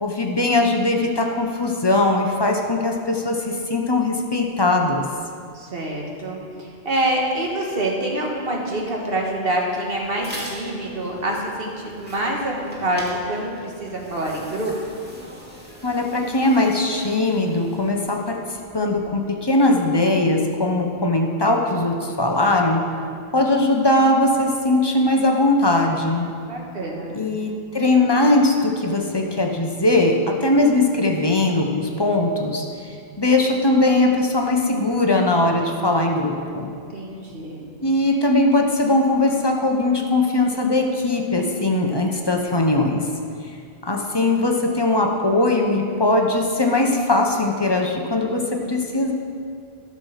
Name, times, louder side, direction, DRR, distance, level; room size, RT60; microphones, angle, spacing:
voice 1, 0.0-5.1 15.8-18.4 18.7-22.8 23.3-26.3 27.1-36.7 37.8-43.1 43.8-49.1, left 2 dB, 25° left, 2 dB, 0.9 m, -20 dB
voice 2, 5.5-14.7 26.5-27.2 36.9-37.6, right 1 dB, 65° right, -1 dB, 1.7 m, -26 dB
sound 1, 9.4-19.3, equal, 10° right, 2.0 m, -42 dB
12.0 x 6.5 x 5.7 m, 2.3 s
omnidirectional pair, 1.1 m